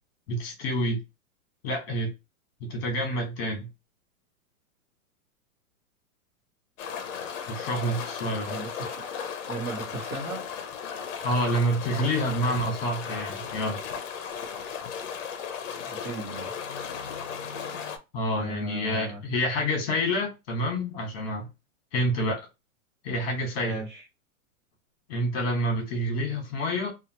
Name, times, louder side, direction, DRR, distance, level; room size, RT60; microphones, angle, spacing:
voice 1, 0.3-1.0 1.6-2.1 2.6-3.7 7.5-8.5 11.2-13.8 18.1-21.5 21.9-22.4 23.0-23.8 25.1-26.9, equal, 40° left, 1.2 m, -28 dB
sound 1, 6.8-18.0, left 7 dB, 60° left, 0.7 m, -36 dB
voice 2, 8.4-9.0 9.4-10.4 15.8-16.5 18.4-19.2 23.5-24.0, right 3 dB, 30° right, 1.1 m, -37 dB
2.8 x 2.4 x 2.8 m
supercardioid pair, 165°, 43 cm